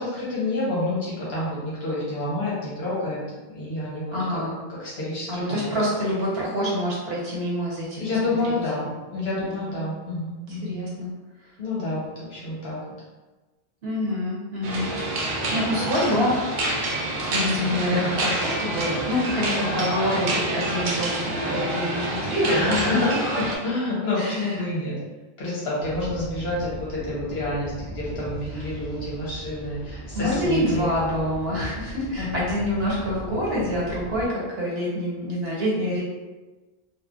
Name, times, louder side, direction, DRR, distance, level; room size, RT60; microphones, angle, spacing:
voice 1, 0.0-3.2 3.5-4.4 4.7-5.7 8.0-10.7 11.6-12.8 17.4-18.1 22.4-23.1 23.6-25.0 25.4-30.9 32.2-32.4, left 2 dB, 85° left, -7 dB, 1.1 m, -28 dB
voice 2, 4.1-4.5 5.3-8.8 9.4-9.7 10.6-11.1 13.8-16.4 17.3-23.0 24.2-24.6 30.1-36.0, equal, 80° right, -5 dB, 1.1 m, -26 dB
sound 1, 14.6-23.6, right 1 dB, 60° right, 0.6 m, -27 dB
sound 2, 25.8-34.3, right 1 dB, 35° left, 1.3 m, -38 dB
3.1 x 2.1 x 2.3 m, 1.2 s
omnidirectional pair, 1.0 m